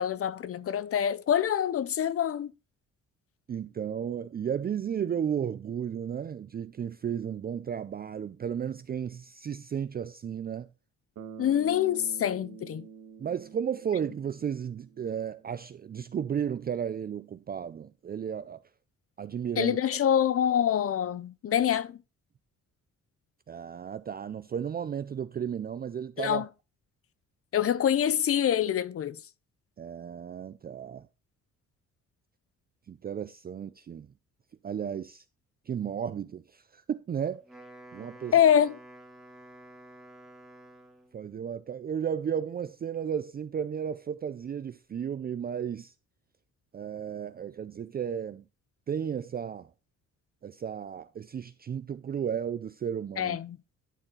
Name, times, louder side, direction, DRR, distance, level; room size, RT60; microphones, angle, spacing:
voice 1, 0.0-2.5 11.4-12.9 19.6-22.0 26.2-26.5 27.5-29.2 38.3-38.8 53.2-53.6, left 9 dB, 50° left, 0.7 m, -25 dB
voice 2, 3.5-10.7 13.2-18.6 19.2-19.8 23.5-26.4 29.8-31.1 32.9-34.1 34.6-35.2 35.7-37.5 37.9-38.3 41.1-45.9 46.7-48.4 48.9-49.7 50.4-53.4, right 8 dB, 30° right, 0.4 m, -34 dB
Bass guitar, 11.2-15.4, right 7 dB, 65° right, 1.7 m, -47 dB
Wind instrument woodwind instrument, 37.3-41.2, right 1 dB, ahead, 2.0 m, -50 dB
11.5 x 4.3 x 3.9 m
cardioid pair, 90°, 30 cm